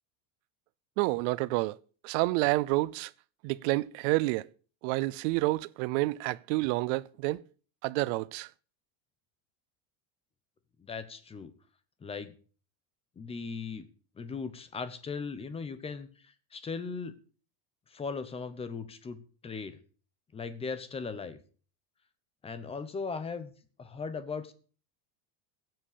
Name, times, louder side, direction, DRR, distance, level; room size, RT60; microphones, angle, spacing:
voice 1, 1.0-1.8 2.0-3.1 3.4-4.5 4.8-7.4 7.8-8.5, right 21 dB, 50° right, 0.5 m, -29 dB
voice 2, 10.8-11.5 12.0-12.3 13.2-13.9 14.2-17.1 17.9-19.2 19.4-19.8 20.3-21.4 22.4-23.5 23.8-24.5, left 5 dB, 10° left, 0.8 m, -38 dB
15.5 x 7.8 x 6.7 m
cardioid pair, 170°, 49 cm